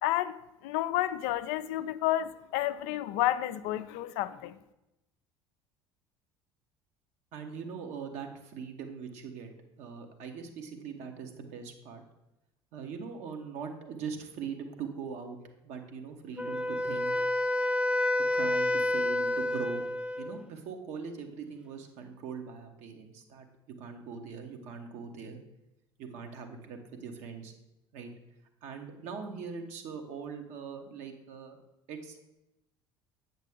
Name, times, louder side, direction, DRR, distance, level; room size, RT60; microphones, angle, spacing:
voice 1, 0.0-0.3 0.6-4.6, left 14 dB, 60° left, 12 dB, 0.4 m, -30 dB
voice 2, 7.3-9.5 9.8-12.0 12.7-17.3 18.3-19.8 20.2-23.5 23.8-25.4 26.0-27.5 27.9-28.1 28.6-31.6 31.9-32.2, right 6 dB, 60° right, 4 dB, 1.1 m, -41 dB
Wind instrument woodwind instrument, 16.4-20.4, left 1 dB, 5° right, 0.5 m, -29 dB
8.2 x 6.0 x 3.5 m, 0.93 s
figure-of-eight pair, 60°, 14 cm